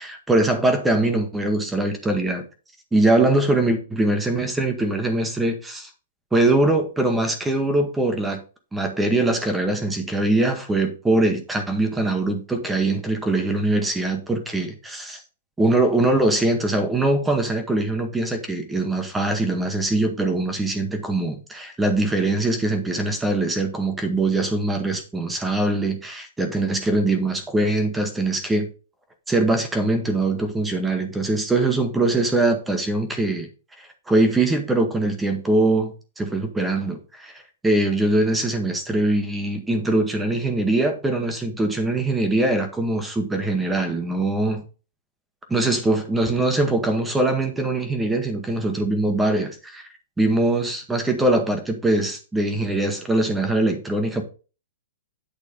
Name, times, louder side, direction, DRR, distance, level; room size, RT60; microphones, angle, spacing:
voice 1, 0.0-2.4 2.9-5.9 6.3-8.4 8.7-15.2 15.6-28.7 29.3-33.5 34.1-44.6 45.5-49.9 50.2-54.2, right 2 dB, 5° right, 0.9 m, -22 dB
8.6 x 4.1 x 4.9 m
hypercardioid pair, 180°, 0 cm